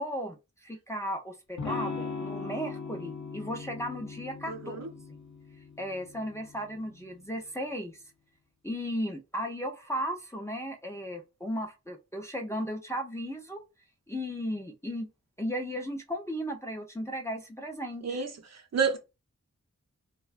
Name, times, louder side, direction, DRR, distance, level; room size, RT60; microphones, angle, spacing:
voice 1, 0.0-4.8 5.8-8.0 8.6-13.6 14.1-15.1 15.4-18.2, equal, 10° left, 0.4 m, -35 dB
Electric guitar / Strum, 1.6-7.3, left 4 dB, 70° left, 0.7 m, -40 dB
voice 2, 4.5-4.9 18.0-18.3 18.7-19.0, right 5 dB, 60° right, 0.6 m, -28 dB
2.6 x 2.2 x 2.4 m
wide cardioid pair, 90°, 29 cm